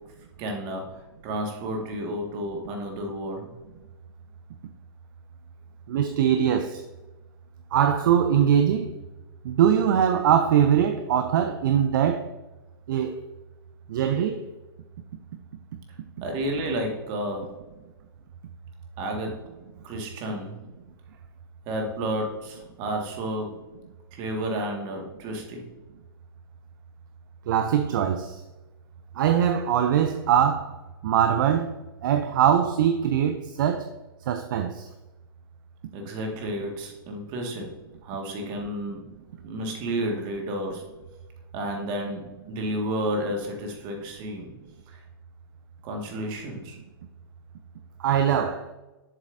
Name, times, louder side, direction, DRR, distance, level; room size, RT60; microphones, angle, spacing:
voice 1, 0.4-3.6 16.2-17.5 19.0-19.4 19.8-20.6 21.7-23.6 24.1-25.6 35.9-37.7 38.0-39.0 39.4-40.8 41.5-42.2 42.5-44.5 44.9-45.0 45.8-46.8, right 1 dB, 40° right, 1.8 m, -31 dB
voice 2, 5.9-6.8 7.7-8.9 9.4-12.3 12.9-13.2 13.9-14.4 27.5-28.4 29.2-30.7 31.0-31.7 32.0-33.9 34.3-34.9 48.0-48.7, right 9 dB, 55° right, 0.5 m, -22 dB
7.6 x 7.1 x 2.7 m
hypercardioid pair, 110°, 13 cm